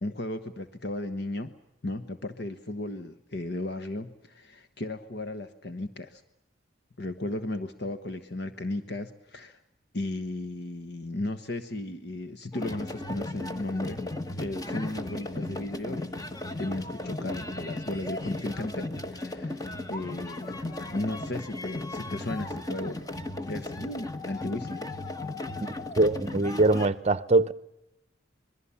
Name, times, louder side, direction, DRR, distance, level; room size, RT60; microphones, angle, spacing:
voice 1, 0.0-1.5 1.8-6.2 7.0-9.6 9.9-14.0 14.3-20.6 20.9-23.0 23.4-24.9, left 2 dB, 60° left, 1.2 m, -35 dB
sound 1, 12.5-26.9, left 2 dB, 20° left, 1.3 m, -36 dB
voice 2, 26.0-27.5, right 2 dB, 35° right, 0.8 m, -22 dB
26.5 x 21.5 x 7.1 m
head